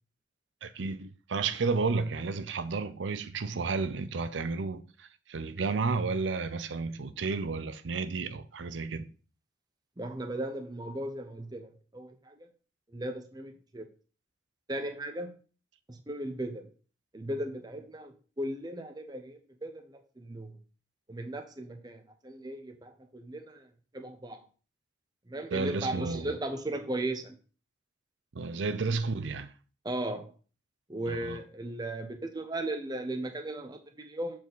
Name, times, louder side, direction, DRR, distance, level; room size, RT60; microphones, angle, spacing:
voice 1, 0.6-9.1 25.5-26.4 28.3-29.5 31.1-31.4, right 4 dB, 85° right, 0.6 m, -32 dB
voice 2, 10.0-12.5 12.9-13.9 14.7-15.3 15.9-16.7 17.1-20.6 21.1-23.7 23.9-24.4 25.3-27.4 29.8-30.2 30.9-34.4, right 1 dB, 20° right, 0.7 m, -37 dB
7.1 x 4.4 x 3.9 m
head